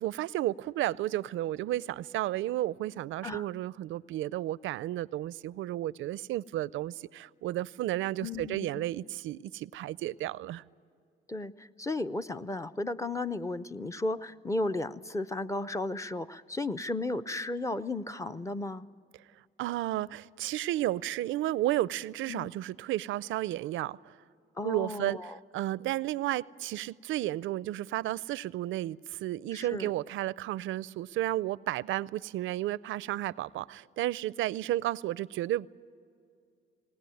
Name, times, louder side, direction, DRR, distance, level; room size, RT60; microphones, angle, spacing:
voice 1, 0.0-10.6 19.6-24.1 24.6-35.7, right 14 dB, 80° right, 0.5 m, -32 dB
voice 2, 8.2-8.9 11.3-18.9 22.3-22.5 24.6-25.4 29.5-29.9, left 2 dB, 15° left, 0.6 m, -34 dB
19.5 x 19.5 x 9.2 m
cardioid pair, 90°, 20 cm